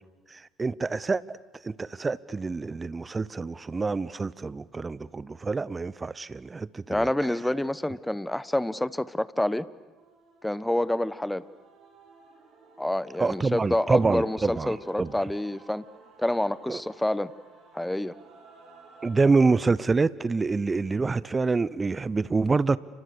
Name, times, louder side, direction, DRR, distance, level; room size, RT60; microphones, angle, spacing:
voice 1, 0.3-1.4 1.6-7.1 13.2-15.1 16.7-16.8 19.0-22.8, right 4 dB, 25° right, 19 dB, 0.8 m, -26 dB
voice 2, 6.9-9.7 10.4-11.4 12.8-15.8 16.2-17.3 17.7-18.1, left 1 dB, 5° left, 17 dB, 1.0 m, -27 dB
Male singing / Female singing / Musical instrument, 10.0-19.5, right 4 dB, 50° right, 7.9 m, -53 dB
30.0 x 27.0 x 6.8 m, 1.3 s
hypercardioid pair, 60°, 0 cm